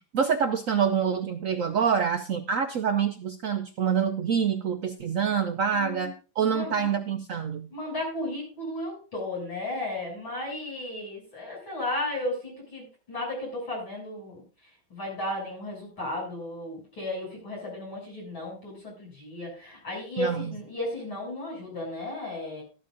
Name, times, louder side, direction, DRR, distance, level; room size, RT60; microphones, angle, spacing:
voice 1, 0.1-7.7 20.2-20.5, right 7 dB, 70° right, 7 dB, 0.7 m, -26 dB
voice 2, 5.7-6.1 6.5-6.9 7.7-14.4 14.9-22.6, left 1 dB, 90° left, -3 dB, 8.0 m, -34 dB
14.0 x 12.0 x 2.6 m, 0.34 s
omnidirectional pair, 2.1 m